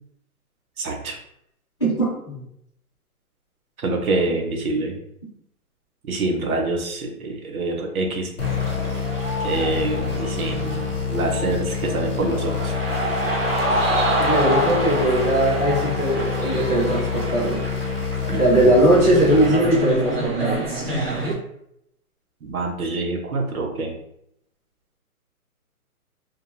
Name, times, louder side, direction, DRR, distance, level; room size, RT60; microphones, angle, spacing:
voice 1, 0.8-1.2 3.8-4.9 6.1-8.3 9.4-12.7 18.3-18.8 22.4-23.9, right 2 dB, 70° right, 2 dB, 0.8 m, -26 dB
voice 2, 1.8-2.4 14.2-17.6 18.4-20.7, right 1 dB, 20° left, -10 dB, 0.5 m, -19 dB
sound 1, 8.4-20.1, left 7 dB, 55° left, 0.7 m, -27 dB
sound 2, 8.4-21.3, right 1 dB, 45° right, 0.5 m, -27 dB
2.4 x 2.2 x 2.9 m, 0.75 s
hypercardioid pair, 170°, 45 cm